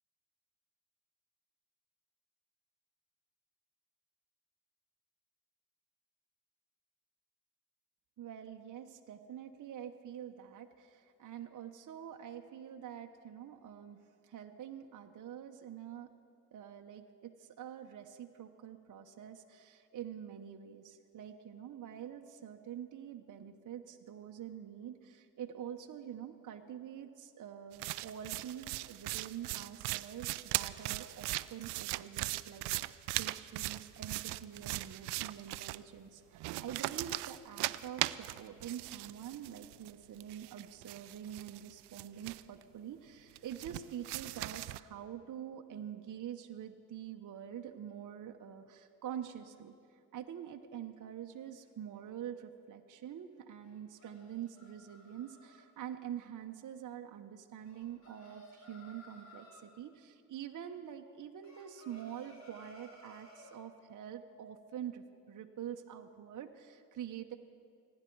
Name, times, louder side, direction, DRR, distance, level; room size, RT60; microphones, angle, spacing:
voice 1, 8.2-16.1 16.5-67.3, right 9 dB, 50° right, 4 dB, 0.9 m, -46 dB
sound 1, 27.7-35.8 36.3-39.9 40.2-42.6 43.3-44.8, right 19 dB, 80° right, 0.5 m, -39 dB
sound 2, 53.6-55.6 57.6-59.7 61.4-63.6, equal, 45° left, 4.0 m, -57 dB
26.0 x 10.5 x 4.6 m, 2.3 s
supercardioid pair, 70°, 39 cm